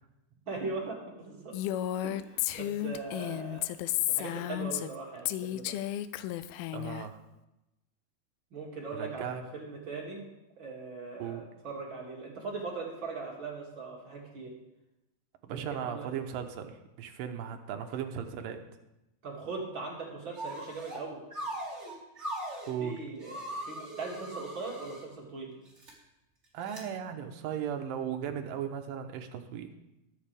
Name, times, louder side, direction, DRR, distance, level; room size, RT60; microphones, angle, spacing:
voice 1, 0.5-1.6 2.0-3.7 4.1-5.7 8.5-10.2 10.6-14.5 15.5-16.1 19.2-21.2 22.8-25.6, right 4 dB, 35° right, -3 dB, 2.8 m, -40 dB
Female speech woman speaking, 1.5-5.0 5.3-7.0, left 13 dB, 85° left, 2.4 m, -33 dB
voice 2, 6.7-7.2 9.0-9.4 11.2-11.4 15.4-18.6 22.7-23.0 26.5-29.7, right 8 dB, 75° right, 6 dB, 2.5 m, -37 dB
sound 1, 20.3-21.0 21.3-22.7 23.2-25.0 25.7-25.9 26.7-26.8, right 1 dB, 20° right, 2.5 m, -40 dB
22.0 x 7.6 x 3.5 m, 0.94 s
omnidirectional pair, 4.4 m